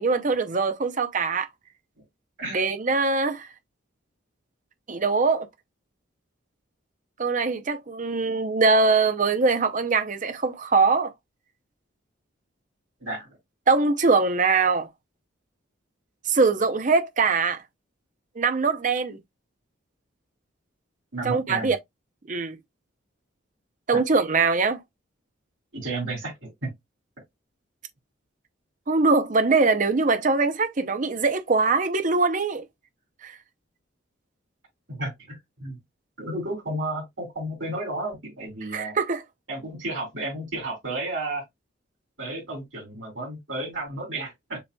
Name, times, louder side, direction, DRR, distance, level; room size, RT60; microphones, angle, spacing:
voice 1, 0.0-1.5 2.5-3.5 4.9-5.5 7.2-11.1 13.7-14.9 16.3-17.6 18.4-19.2 21.2-21.8 22.3-22.6 23.9-24.8 28.9-32.6 33.2-33.4 38.7-39.2, right 4 dB, 40° right, 0.6 m, -22 dB
voice 2, 21.1-21.7 23.9-24.0 25.7-26.7 34.9-35.8 36.2-39.0 39.5-41.4 42.2-44.6, right 2 dB, 75° right, 3.4 m, -32 dB
6.8 x 3.0 x 2.2 m
head